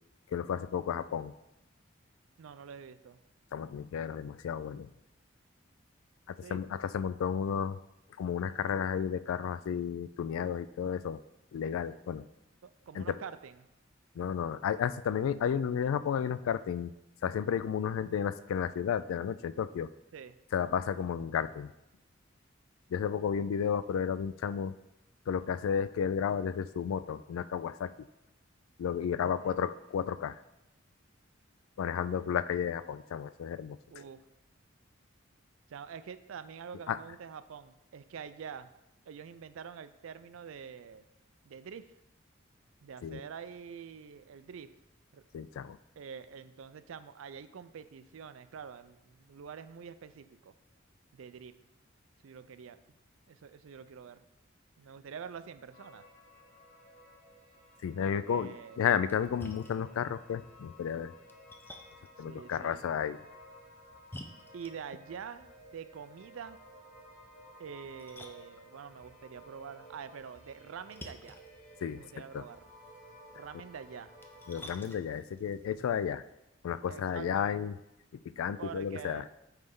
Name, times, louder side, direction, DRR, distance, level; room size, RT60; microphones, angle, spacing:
voice 1, 0.3-1.3 3.5-4.9 6.3-7.8 8.2-11.2 11.5-12.3 13.0-13.2 14.2-16.9 17.2-19.9 20.5-21.7 22.9-24.7 25.3-27.9 28.8-30.4 31.8-33.8 36.9-37.0 43.0-43.2 45.3-45.8 57.8-61.1 62.2-63.2 71.8-72.0 72.3-72.4 74.5-76.2 76.6-77.7 78.3-79.2, left 7 dB, 85° left, 14 dB, 0.3 m, -32 dB
voice 2, 2.4-3.2 6.4-6.6 12.6-13.7 20.1-20.4 29.2-29.6 32.0-32.2 33.9-34.2 35.7-38.7 39.1-41.1 41.5-41.9 42.8-44.7 45.1-45.2 46.0-50.5 51.1-51.5 52.2-52.8 53.3-54.2 54.8-56.1 58.1-58.8 62.2-62.8 64.5-66.6 67.6-71.4 71.9-72.7 73.3-74.1 76.9-77.5 78.6-79.3, right 7 dB, 80° right, 13 dB, 0.4 m, -46 dB
sound 1, 55.7-74.9, equal, 35° left, 1.5 m, -55 dB
Splash splatter, 58.9-76.0, left 1 dB, 10° left, 0.4 m, -54 dB
9.1 x 3.3 x 3.6 m, 0.89 s
head